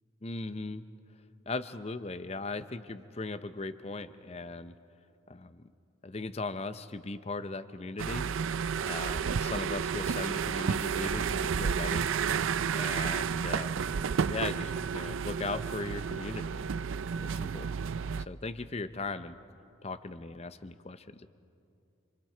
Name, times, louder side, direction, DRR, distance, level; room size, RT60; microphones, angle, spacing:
voice 1, 0.2-0.9 1.5-4.7 5.3-5.7 6.0-8.3 8.8-12.1 12.7-13.9 14.3-16.5 17.2-17.7 18.2-19.4 19.8-21.3, left 3 dB, 30° left, 12 dB, 0.6 m, -38 dB
sound 1, 8.0-18.3, right 6 dB, 75° right, 0.4 m, -31 dB
27.0 x 26.0 x 4.5 m, 2.5 s
head